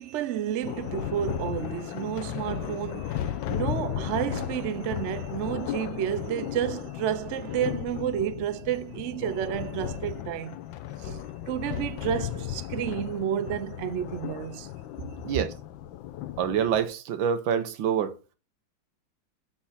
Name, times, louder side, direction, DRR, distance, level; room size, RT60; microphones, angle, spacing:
voice 1, 0.0-10.6 11.0-11.2 11.5-14.7, right 10 dB, 65° right, 0.7 m, -31 dB
Thunder, 0.6-16.9, left 11 dB, 85° left, 1.4 m, -35 dB
voice 2, 15.2-15.6 16.4-18.2, right 8 dB, 85° right, 1.7 m, -26 dB
7.1 x 4.7 x 5.6 m
omnidirectional pair, 2.0 m